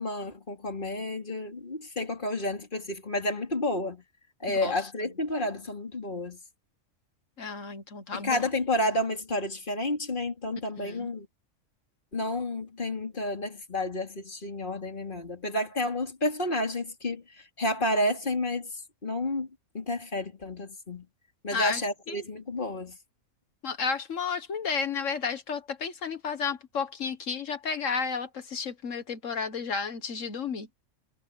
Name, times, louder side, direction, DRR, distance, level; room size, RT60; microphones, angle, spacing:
voice 1, 0.0-4.0 4.4-6.4 8.1-11.3 12.1-18.7 19.0-19.5 19.7-21.1 21.4-23.0, left 1 dB, 40° left, 3.6 m, -30 dB
voice 2, 7.4-8.4 10.8-11.1 21.5-21.8 22.1-22.2 23.6-30.7, left 5 dB, 75° left, 1.7 m, -32 dB
omnidirectional pair, 1.3 m